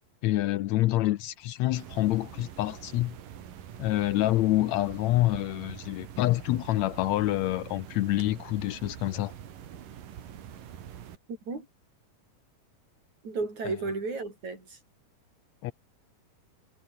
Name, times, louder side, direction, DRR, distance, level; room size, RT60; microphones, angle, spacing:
voice 1, 0.2-3.2 3.8-9.3 15.6-15.7, left 16 dB, 80° left, 1.6 m, -27 dB
sound 1, 1.7-11.2, right 9 dB, 70° right, 3.7 m, -45 dB
voice 2, 13.2-14.8, right 3 dB, 55° right, 9.1 m, -33 dB
omnidirectional pair, 4.0 m